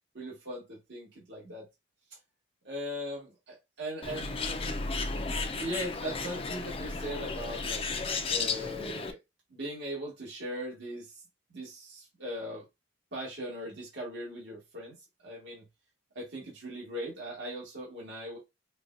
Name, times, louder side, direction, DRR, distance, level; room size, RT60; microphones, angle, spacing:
voice 1, 0.1-1.6 2.1-2.2 2.6-4.8 5.5-7.8 8.3-9.2 9.5-11.2 11.5-12.6 13.1-15.6 16.1-18.4, equal, 65° right, 1.7 m, -39 dB
Bird, 4.0-9.1, left 4 dB, 30° left, 0.4 m, -34 dB
5.2 x 2.3 x 2.5 m
head